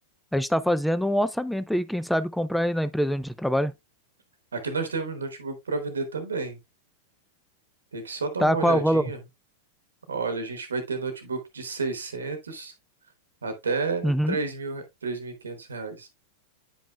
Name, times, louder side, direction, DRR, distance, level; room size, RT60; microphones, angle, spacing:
voice 1, 0.3-3.7 8.4-9.1 14.0-14.4, equal, ahead, 0.4 m, -24 dB
voice 2, 4.5-6.6 7.9-9.2 10.1-12.7 13.4-16.1, right 4 dB, 80° right, 1.0 m, -31 dB
8.7 x 5.3 x 2.2 m
figure-of-eight pair, 95°, 0 cm